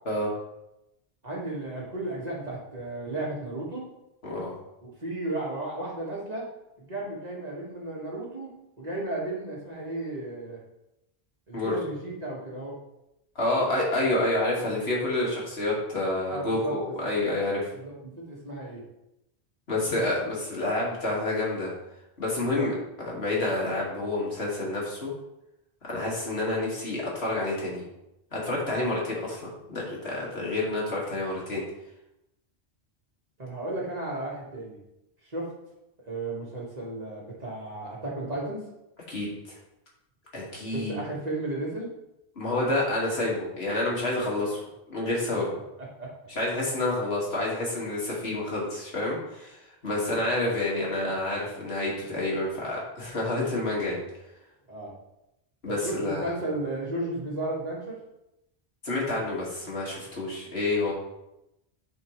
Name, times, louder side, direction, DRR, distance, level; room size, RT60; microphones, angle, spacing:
voice 1, 1.2-3.9 4.8-6.5 6.8-8.5 8.8-10.6 11.5-12.8 16.3-16.7 17.7-18.8 22.4-22.7 33.4-34.8 35.2-35.5 36.1-38.7 40.7-41.9 45.8-46.1 49.9-50.3 54.7-54.9 55.7-58.0, right 2 dB, 40° right, -4 dB, 1.8 m, -34 dB
voice 2, 13.4-17.6 19.7-21.7 22.2-25.1 25.8-27.9 28.3-31.6 39.1-39.6 40.3-41.0 42.4-44.6 44.9-45.5 46.3-54.0 55.6-56.3 58.8-60.9, left 2 dB, 70° left, -4 dB, 2.2 m, -28 dB
10.5 x 4.5 x 3.1 m, 0.89 s
omnidirectional pair, 1.1 m